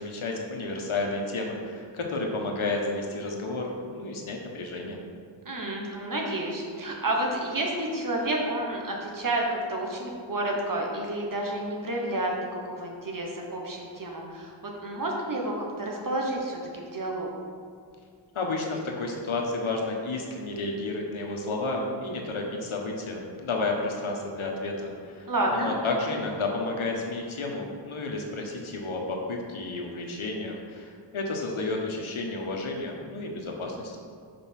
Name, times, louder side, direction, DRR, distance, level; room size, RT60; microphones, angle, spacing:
voice 1, 0.0-5.0 18.3-34.0, left 2 dB, 80° left, 0 dB, 1.2 m, -31 dB
voice 2, 5.4-12.3 12.6-17.3 25.3-25.7, right 1 dB, 40° right, 0 dB, 1.2 m, -30 dB
5.3 x 5.0 x 5.8 m, 2.2 s
wide cardioid pair, 100°, 48 cm